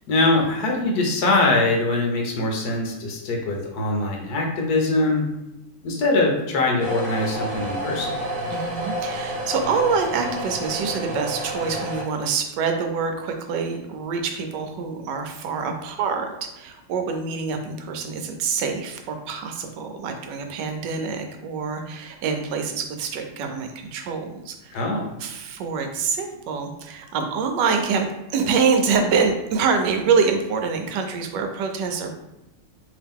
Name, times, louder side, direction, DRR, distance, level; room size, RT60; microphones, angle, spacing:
voice 1, 0.1-5.2 5.8-8.2 24.7-25.1, left 2 dB, 70° left, 1 dB, 1.1 m, -22 dB
sound 1, 6.8-12.0, equal, 60° right, 1.2 m, -30 dB
voice 2, 8.5-24.8 25.2-32.1, right 5 dB, 80° right, 4 dB, 1.2 m, -25 dB
3.0 x 2.9 x 3.5 m, 0.90 s
omnidirectional pair, 1.9 m